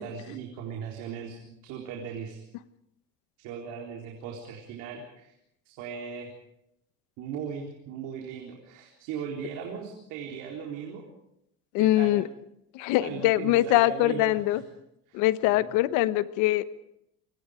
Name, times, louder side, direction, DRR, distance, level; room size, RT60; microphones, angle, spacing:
voice 1, 0.0-2.4 3.4-5.3 5.7-6.3 7.2-11.0 11.8-12.2 13.0-14.6 15.1-15.7, right 7 dB, 65° right, 1 dB, 4.0 m, -38 dB
voice 2, 11.7-12.2 12.7-14.6 15.1-16.6, left 15 dB, 70° left, 14 dB, 1.2 m, -23 dB
28.0 x 23.5 x 5.1 m, 0.79 s
cardioid pair, 170°, 31 cm